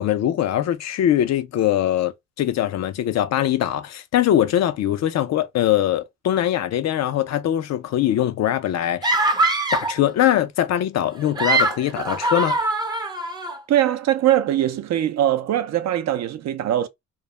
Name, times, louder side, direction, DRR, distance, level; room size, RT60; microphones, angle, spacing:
voice 1, 0.0-9.1 9.7-12.6, left 11 dB, 60° left, 0.5 m, -22 dB
woman screaming in desperation dramatic intense, 9.0-10.0 11.2-13.6, right 2 dB, 15° right, 0.5 m, -22 dB
voice 2, 13.7-16.9, right 12 dB, 60° right, 0.5 m, -21 dB
2.3 x 2.0 x 3.0 m
cardioid pair, 90°, 30 cm